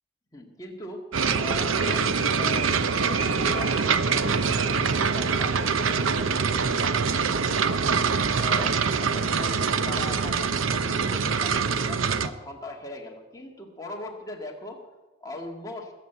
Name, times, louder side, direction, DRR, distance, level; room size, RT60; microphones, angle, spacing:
voice 1, 0.3-1.1 1.4-7.9 8.4-14.8 15.2-15.9, left 2 dB, 20° left, 0 dB, 2.1 m, -40 dB
sound 1, 1.1-12.3, right 5 dB, 85° right, 0.7 m, -24 dB
20.5 x 7.8 x 8.2 m, 1.2 s
head